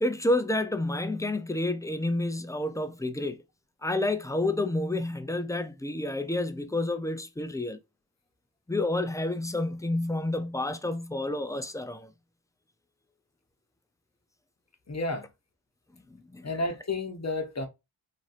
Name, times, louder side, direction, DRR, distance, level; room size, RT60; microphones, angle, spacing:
voice 1, 0.0-3.4 3.8-7.8 8.7-12.1 16.1-16.5, left 2 dB, 10° left, 0.3 m, -29 dB
voice 2, 14.9-15.3 16.4-17.7, left 2 dB, 35° left, 0.8 m, -31 dB
3.0 x 2.7 x 2.4 m
cardioid pair, 50°, 49 cm